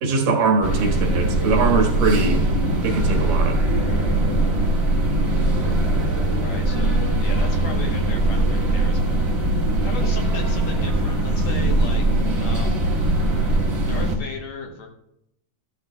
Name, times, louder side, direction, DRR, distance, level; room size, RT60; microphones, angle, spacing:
voice 1, 0.0-2.4 2.8-3.6, right 4 dB, 75° right, 3.1 m, -21 dB
sound 1, 0.6-14.1, right 1 dB, 35° right, 0.9 m, -21 dB
voice 2, 6.4-9.3 9.5-13.0 13.9-14.9, left 5 dB, 65° left, 2.2 m, -36 dB
14.0 x 12.0 x 2.3 m
omnidirectional pair, 3.9 m